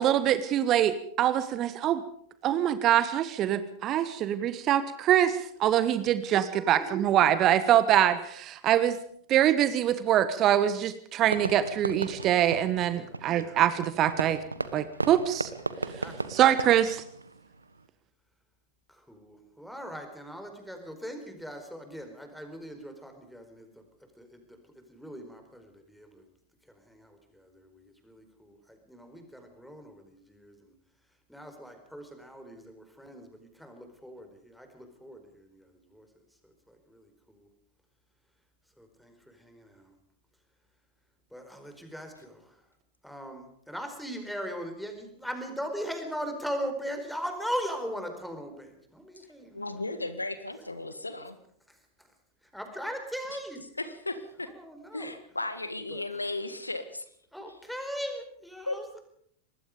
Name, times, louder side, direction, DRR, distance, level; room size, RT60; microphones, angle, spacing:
voice 1, 0.0-2.0 2.4-9.0 9.3-14.4 14.7-15.5 16.3-17.0, right 11 dB, 35° right, 14 dB, 1.2 m, -24 dB
voice 2, 6.3-7.0 12.9-13.2 16.0-16.3 18.9-23.7 24.2-24.4 24.7-26.2 26.7-30.7 31.3-36.1 36.7-37.5 38.8-39.9 41.3-42.6 43.0-49.8 51.7-52.1 52.5-53.6 54.4-55.2 55.9-56.0 57.3-59.0, equal, ahead, 5 dB, 4.7 m, -40 dB
Fireworks, 11.3-17.8, right 3 dB, 80° right, 1.3 m, -36 dB
voice 3, 49.5-51.4 53.8-54.5 54.9-57.1 58.7-58.8, left 2 dB, 85° left, 11 dB, 1.7 m, -35 dB
25.0 x 20.0 x 5.2 m, 0.65 s
figure-of-eight pair, 90°, 0 cm